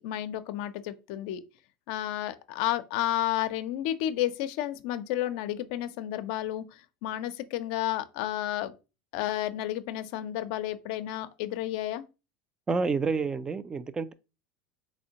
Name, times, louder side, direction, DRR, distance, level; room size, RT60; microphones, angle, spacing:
voice 1, 0.0-1.4 1.9-8.7 9.1-12.0, left 13 dB, 70° left, 0.4 m, -31 dB
voice 2, 12.7-14.1, right 4 dB, 20° right, 0.3 m, -29 dB
3.5 x 3.1 x 2.8 m
supercardioid pair, 115°, 4 cm